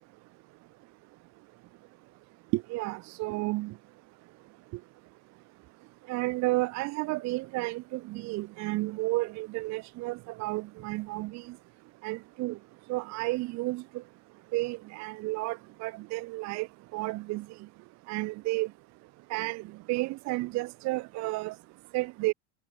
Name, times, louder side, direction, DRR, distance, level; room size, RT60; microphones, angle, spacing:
voice 1, 2.5-3.7 6.1-11.4 12.0-12.6 12.9-14.0 14.5-16.7 16.9-17.4 18.1-18.7 19.3-21.5 21.9-22.3, right 21 dB, 45° right, 0.7 m, -32 dB
supercardioid pair, 130°, 39 cm